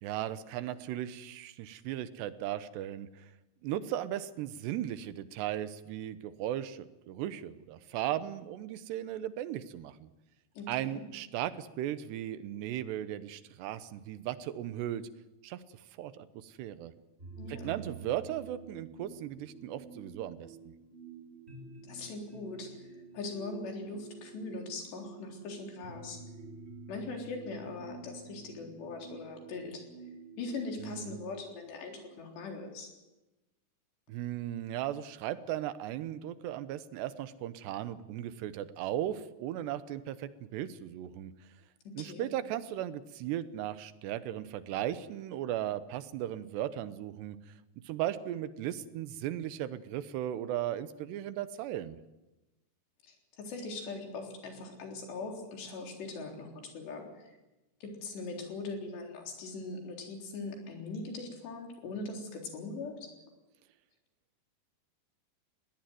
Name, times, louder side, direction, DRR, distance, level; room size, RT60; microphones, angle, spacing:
voice 1, 0.0-3.3 3.6-10.1 10.7-15.1 15.4-15.6 16.0-16.9 17.5-20.7 30.8-31.1 34.1-41.3 41.9-47.5 47.8-52.0, right 12 dB, 90° right, 13 dB, 3.2 m, -37 dB
voice 2, 10.6-11.1 17.4-17.8 21.9-22.7 23.1-26.2 26.9-29.8 30.4-32.9 41.9-42.3 53.0-57.3 57.8-63.1, left 3 dB, 85° left, 2 dB, 5.9 m, -41 dB
sound 1, 17.2-32.8, right 4 dB, 15° right, 3.9 m, -50 dB
21.5 x 18.0 x 9.4 m, 1.0 s
omnidirectional pair, 4.8 m